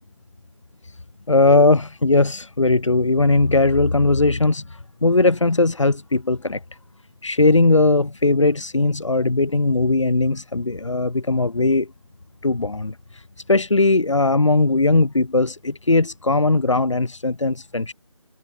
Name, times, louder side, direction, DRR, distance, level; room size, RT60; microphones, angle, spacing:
voice 1, 1.3-6.6 7.2-11.9 12.4-13.2 13.5-17.9, left 2 dB, 65° left, 4.8 m, -19 dB
figure-of-eight pair, 165°, 17 cm